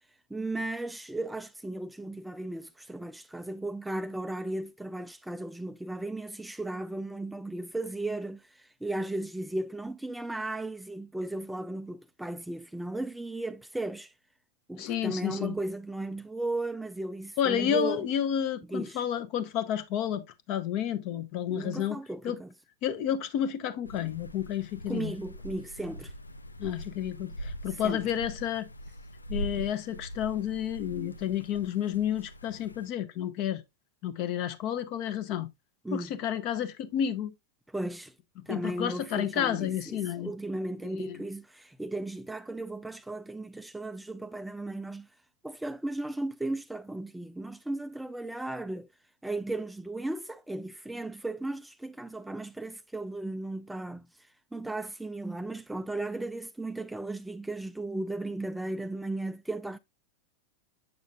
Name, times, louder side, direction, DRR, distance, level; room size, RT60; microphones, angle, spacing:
voice 1, 0.3-14.1 14.7-18.0 18.7-19.0 21.5-22.5 24.9-26.1 27.7-28.0 35.8-36.1 37.7-38.1 38.5-45.1 45.4-48.9 49.2-59.8, right 2 dB, 5° right, 0.3 m, -36 dB
voice 2, 14.8-15.5 17.4-22.4 22.8-25.1 26.6-28.7 29.3-33.6 34.0-35.5 35.9-37.3 38.5-40.3 41.0-41.2, left 10 dB, 40° left, 0.8 m, -31 dB
sound 1, 23.8-32.9, equal, 80° left, 0.4 m, -42 dB
7.5 x 6.3 x 2.3 m
figure-of-eight pair, 90°, 0 cm